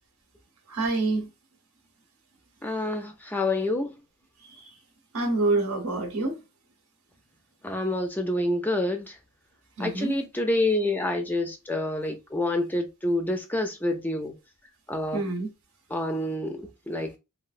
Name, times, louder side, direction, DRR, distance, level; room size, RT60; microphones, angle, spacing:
voice 1, 0.7-1.3 4.4-4.7 5.1-6.4 9.8-10.1 15.1-15.5, right 2 dB, 75° right, 0.9 m, -27 dB
voice 2, 2.6-3.9 7.6-9.2 9.8-14.3 14.9-15.2 15.9-17.1, left 1 dB, 10° left, 0.3 m, -27 dB
3.0 x 2.6 x 2.4 m
head